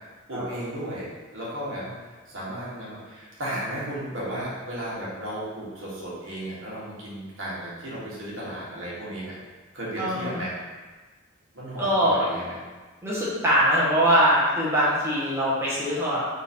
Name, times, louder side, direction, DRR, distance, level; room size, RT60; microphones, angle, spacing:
voice 1, 0.3-1.9 2.3-9.4 9.7-10.5 11.5-12.5, right 1 dB, 70° right, -7 dB, 1.3 m, -34 dB
voice 2, 10.0-10.4 11.8-12.3 13.0-16.4, equal, 15° right, -8 dB, 1.0 m, -22 dB
3.8 x 2.6 x 4.2 m, 1.3 s
head